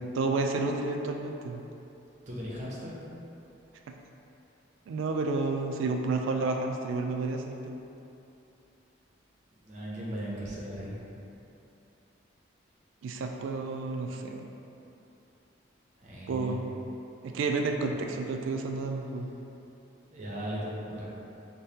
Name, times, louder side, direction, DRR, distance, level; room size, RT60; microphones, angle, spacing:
voice 1, 0.1-1.6 3.9-4.0 4.9-7.8 13.0-14.5 16.3-16.6 17.2-19.3, right 3 dB, 80° right, 4 dB, 0.3 m, -30 dB
voice 2, 2.3-3.0 9.6-11.3 16.0-16.6 17.8-18.0 20.1-21.1, equal, 40° right, -6 dB, 0.7 m, -38 dB
4.9 x 2.2 x 2.8 m, 2.8 s
head